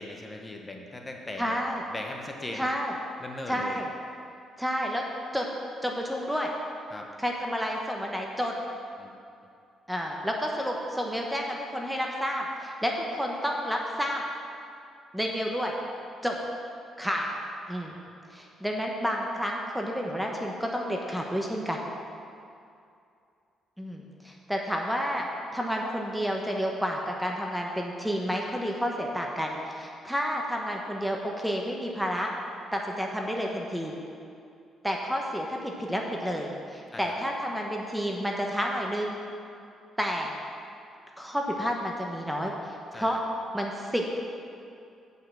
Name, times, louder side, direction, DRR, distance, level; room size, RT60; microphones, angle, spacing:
voice 1, 0.0-1.6 1.9-2.7 3.2-3.8 6.9-7.1 9.0-9.2 36.9-37.1 42.9-43.2, left 2 dB, 20° left, 1 dB, 1.1 m, -39 dB
voice 2, 1.4-1.8 2.5-2.9 3.5-3.8 4.6-5.0 5.3-5.5 5.8-6.5 7.2-8.5 9.9-14.2 15.1-15.8 16.2-16.4 17.0-17.4 17.7-18.0 18.3-21.8 23.8-25.3 25.5-32.3 32.7-33.9 34.8-39.2 40.0-40.3 41.2-43.2 43.5-44.3, equal, ahead, 0 dB, 1.0 m, -30 dB
8.5 x 5.5 x 7.5 m, 2.5 s
cardioid pair, 90°, 0 cm